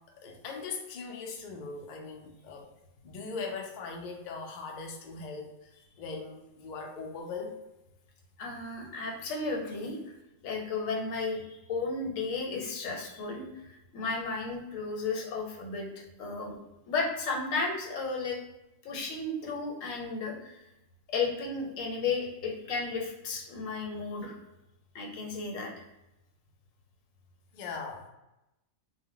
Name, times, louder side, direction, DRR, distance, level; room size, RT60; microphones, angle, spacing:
voice 1, 0.2-2.7 3.0-5.7 6.0-7.6 27.5-28.0, left 4 dB, 70° left, 2 dB, 0.4 m, -40 dB
voice 2, 8.4-10.0 10.4-16.5 16.9-18.4 18.8-20.6 21.1-24.4 24.9-25.7, left 4 dB, 90° left, 0 dB, 1.0 m, -34 dB
2.1 x 2.1 x 3.7 m, 0.92 s
omnidirectional pair, 1.3 m